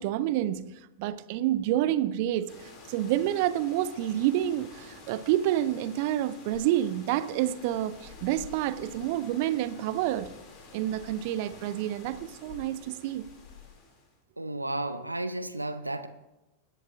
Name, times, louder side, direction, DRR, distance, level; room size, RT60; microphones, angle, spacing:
voice 1, 0.0-10.3 10.7-13.2, right 12 dB, 50° right, 0.5 m, -28 dB
sound 1, 2.5-14.2, left 4 dB, 35° left, 2.6 m, -50 dB
voice 2, 14.4-16.1, right 2 dB, 85° right, 0.7 m, -33 dB
21.0 x 11.0 x 2.5 m
figure-of-eight pair, 90°, 0 cm